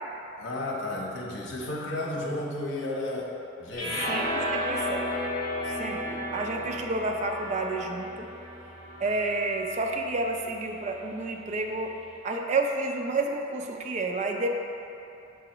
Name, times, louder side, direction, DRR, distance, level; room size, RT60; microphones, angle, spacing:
voice 1, 0.4-3.3 3.6-4.0, left 1 dB, 65° left, -2 dB, 0.9 m, -33 dB
sound 1, 3.7-10.0, left 1 dB, 50° left, 1.5 m, -33 dB
voice 2, 4.1-5.1 5.7-8.3 9.0-12.0 12.2-14.5, right 2 dB, 35° right, 3 dB, 0.4 m, -30 dB
6.8 x 4.7 x 3.0 m, 2.8 s
head